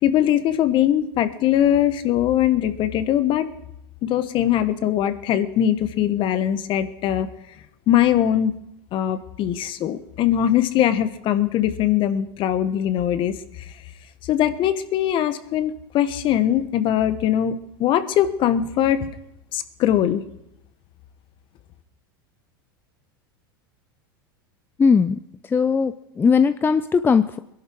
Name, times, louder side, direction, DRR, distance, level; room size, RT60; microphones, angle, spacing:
voice 1, 0.0-3.5 4.0-7.3 7.9-8.5 8.9-13.4 14.2-19.1 19.5-20.2, left 11 dB, 45° left, 12 dB, 1.3 m, -21 dB
voice 2, 24.8-27.4, left 5 dB, 15° left, 12 dB, 0.5 m, -19 dB
22.0 x 11.0 x 4.6 m, 0.81 s
hypercardioid pair, 95°, 12 cm